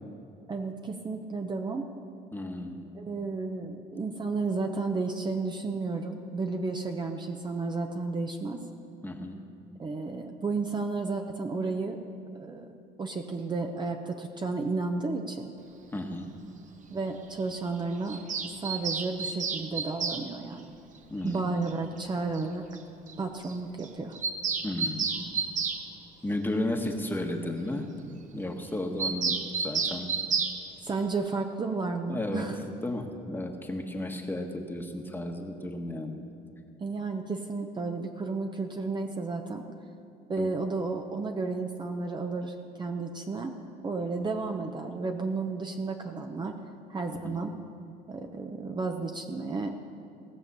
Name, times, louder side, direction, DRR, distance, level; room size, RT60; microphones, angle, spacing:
voice 1, 0.5-1.9 2.9-8.6 9.8-12.0 12.3-12.7 13.0-15.5 16.9-18.2 18.6-20.7 21.2-22.7 23.2-24.2 30.8-32.6 36.8-39.7 40.3-43.6 43.8-46.6 46.9-47.5 48.1-49.7, right 3 dB, 25° right, 4 dB, 0.8 m, -32 dB
voice 2, 2.3-2.8 9.0-9.4 15.9-16.4 21.1-21.5 24.6-25.1 26.2-27.9 28.3-29.4 29.6-30.1 32.1-32.5 32.8-36.2 40.4-40.5 47.2-47.4, left 1 dB, 10° left, 3 dB, 1.3 m, -33 dB
Bird vocalization bird call bird song, 18.1-20.2 21.7-21.8 22.0-22.1 22.3-22.4 22.7-22.8 23.1-23.2 23.4-23.6 23.8-25.8 29.0-30.6, right 5 dB, 50° right, 1.0 m, -30 dB
18.0 x 7.0 x 6.8 m, 2.6 s
cardioid pair, 110°, 17 cm